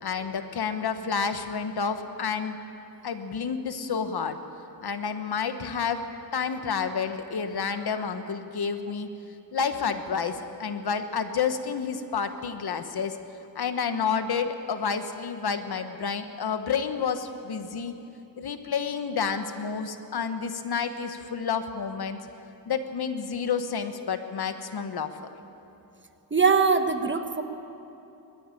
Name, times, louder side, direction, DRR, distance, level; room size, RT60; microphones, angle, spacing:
voice 1, 0.0-2.6 3.0-4.4 4.8-6.0 6.3-9.1 9.5-13.2 13.5-17.9 18.4-22.2 22.7-25.1, left 6 dB, 70° left, 8 dB, 1.3 m, -29 dB
voice 2, 26.3-27.4, right 5 dB, 30° right, 8 dB, 1.2 m, -22 dB
21.0 x 13.5 x 9.9 m, 2.9 s
wide cardioid pair, 90°, 40 cm